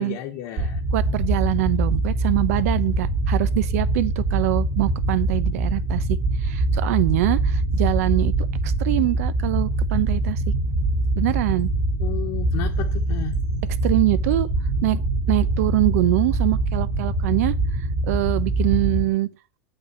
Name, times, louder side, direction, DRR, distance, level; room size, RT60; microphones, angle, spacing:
voice 1, 0.0-0.8 12.0-13.3, left 12 dB, 45° left, 1.2 m, -32 dB
sound 1, 0.6-19.0, right 2 dB, 45° right, 2.0 m, -23 dB
voice 2, 0.9-8.3 8.6-10.4 11.2-11.7 13.8-14.5 14.8-15.0 15.3-19.3, right 17 dB, 65° right, 0.8 m, -24 dB
9.1 x 5.4 x 6.8 m
supercardioid pair, 170°, 9 cm